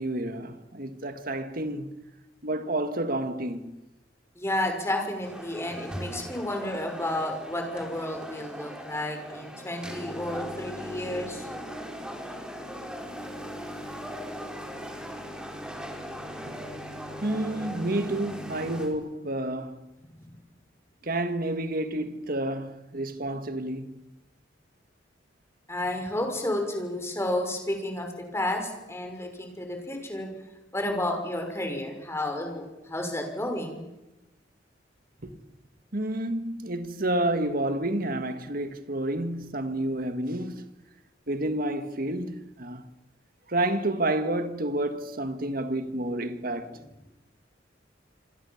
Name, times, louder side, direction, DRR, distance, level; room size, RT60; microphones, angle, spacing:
voice 1, 0.0-2.0 2.4-3.8 16.5-16.6 17.2-19.9 21.0-24.0 35.2-35.4 35.9-40.7 41.3-42.9 43.5-46.8, right 1 dB, 50° right, 1.9 m, -30 dB
voice 2, 4.4-11.5 25.7-28.1 28.3-30.3 30.7-33.8, left 1 dB, 15° left, 5.8 m, -31 dB
sound 1, 5.2-18.9, equal, 5° right, 4.7 m, -39 dB
27.0 x 26.5 x 7.3 m
head